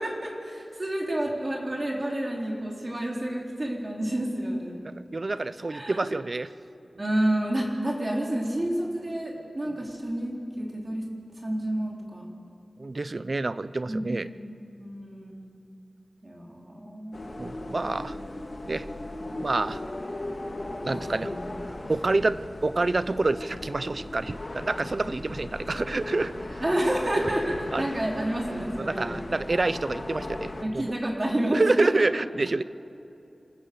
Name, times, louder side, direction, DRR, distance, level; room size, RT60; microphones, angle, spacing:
voice 1, 0.0-4.7 5.7-6.2 7.0-11.1 11.4-12.2 13.9-14.5 14.8-15.5 16.2-17.2 18.6-18.7 20.9-21.3 26.6-27.4 27.8-29.3 30.6-31.9, right 1 dB, 30° right, -2 dB, 3.6 m, -30 dB
voice 2, 4.8-6.5 12.8-14.3 17.4-18.2 18.7-18.9 19.4-19.8 20.8-21.3 21.9-26.6 27.2-27.3 27.7-27.8 28.8-30.9 31.5-32.6, right 2 dB, 45° right, 15 dB, 0.6 m, -27 dB
sound 1, 17.1-30.6, left 1 dB, 45° left, 1.9 m, -37 dB
26.5 x 15.0 x 7.0 m, 2.6 s
wide cardioid pair, 90°, 0 cm